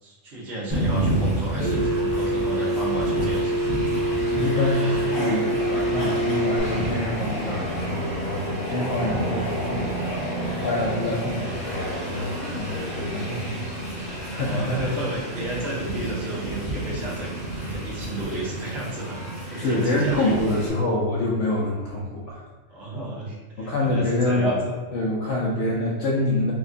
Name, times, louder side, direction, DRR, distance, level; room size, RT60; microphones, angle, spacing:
voice 1, 0.0-3.7 4.6-4.9 13.1-13.5 14.0-20.3 22.7-24.6, right 2 dB, 60° right, -6 dB, 1.2 m, -33 dB
Train, 0.7-20.7, right 1 dB, 90° left, 1.8 m, -30 dB
Telephone, 1.6-6.6, right 1 dB, 40° right, 1.3 m, -25 dB
voice 2, 4.3-13.4 14.0-14.9 19.6-22.4 23.6-24.6 24.9-26.5, left 1 dB, 75° left, -4 dB, 0.9 m, -26 dB
4.8 x 2.2 x 2.5 m, 1.3 s
omnidirectional pair, 1.3 m